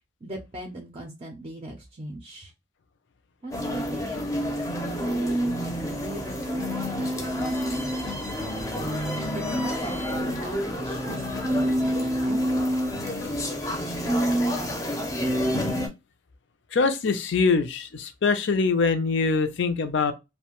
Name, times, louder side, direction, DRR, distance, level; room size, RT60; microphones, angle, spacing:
voice 1, 0.2-2.5 3.4-8.3 9.3-12.7, right 1 dB, 30° right, 0.4 m, -40 dB
sound 1, 3.5-15.9, equal, 15° left, 0.5 m, -28 dB
voice 2, 16.7-20.1, left 4 dB, 65° left, 0.5 m, -23 dB
2.6 x 2.1 x 2.9 m
head